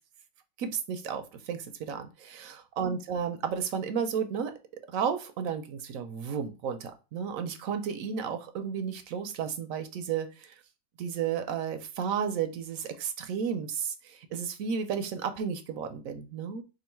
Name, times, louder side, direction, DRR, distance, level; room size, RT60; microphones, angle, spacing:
voice 1, 0.6-4.5 4.9-10.5 11.0-16.6, right 7 dB, 75° right, 8 dB, 1.0 m, -33 dB
3.8 x 2.4 x 4.4 m, 0.30 s
omnidirectional pair, 1.5 m